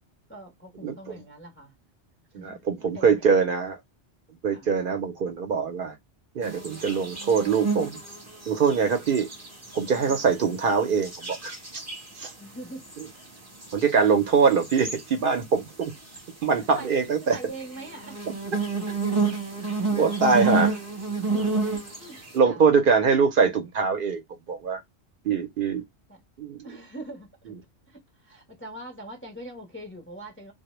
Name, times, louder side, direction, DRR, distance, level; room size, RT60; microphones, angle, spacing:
voice 1, 0.3-1.7 2.4-3.1 4.5-4.7 10.1-10.2 12.4-12.9 16.6-16.9 17.3-18.2 18.9-19.0 21.3-22.2 22.4-22.6 25.3-25.4 26.1-26.2 26.6-27.5 27.9-30.5, right 1 dB, 20° left, 0.4 m, -42 dB
voice 2, 0.8-1.2 2.3-3.8 4.4-5.9 6.4-8.0 8.5-9.3 9.7-11.8 12.1-12.3 13.0-13.1 13.7-15.9 16.4-17.4 19.9-20.8 22.3-24.2 24.5-24.8 25.2-25.8 26.4-26.8, right 5 dB, 60° right, 0.6 m, -23 dB
sound 1, 6.4-10.3 10.7-12.3 12.9-13.2 13.6-13.9 14.3-15.1 15.8-16.2 17.6-22.3, right 4 dB, 15° right, 0.7 m, -30 dB
2.0 x 2.0 x 2.9 m
omnidirectional pair, 1.2 m